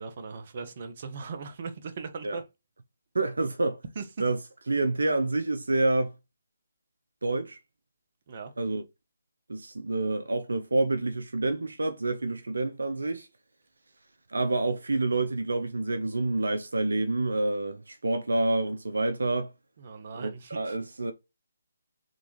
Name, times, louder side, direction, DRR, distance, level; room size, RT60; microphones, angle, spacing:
voice 1, 0.0-2.4 3.9-4.0 8.3-8.5 19.8-20.8, right 5 dB, 45° right, 1.0 m, -39 dB
voice 2, 3.1-3.8 4.2-4.4 4.7-6.1 7.2-7.6 8.6-8.8 9.5-13.3 14.3-19.5 20.2-21.1, right 2 dB, 75° right, 0.7 m, -28 dB
3.9 x 3.6 x 3.1 m
figure-of-eight pair, 150°, 0 cm